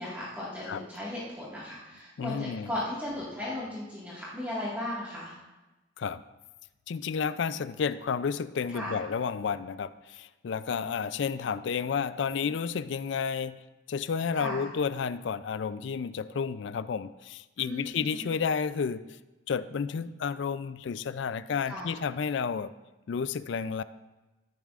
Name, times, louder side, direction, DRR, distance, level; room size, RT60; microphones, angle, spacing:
voice 1, 0.0-5.4 8.7-9.0 14.4-14.7 17.6-18.3 21.7-22.0, left 1 dB, 10° right, -8 dB, 1.8 m, -36 dB
voice 2, 2.2-2.7 6.0-6.2 6.9-13.6 13.9-19.1 19.5-22.7 23.1-23.8, left 6 dB, 60° left, 15 dB, 0.4 m, -31 dB
14.0 x 10.5 x 2.5 m, 1.1 s
head